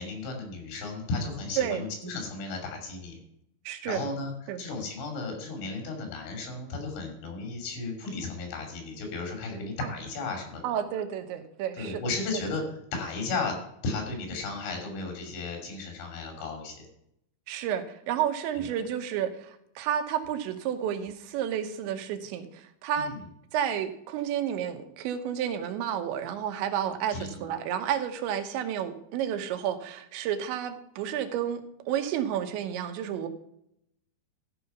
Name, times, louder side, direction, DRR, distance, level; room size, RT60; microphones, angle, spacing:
voice 1, 0.0-3.2 3.8-4.3 4.6-10.6 11.7-12.6 12.9-13.6 13.8-16.9 18.5-18.7 23.0-23.2 27.1-27.4, left 3 dB, 90° left, 3 dB, 5.3 m, -34 dB
voice 2, 3.7-4.1 4.5-4.6 9.8-9.9 10.6-12.0 17.5-23.1 23.5-33.3, right 9 dB, 85° right, 8 dB, 3.3 m, -31 dB
13.5 x 5.5 x 5.7 m, 0.75 s
omnidirectional pair, 5.1 m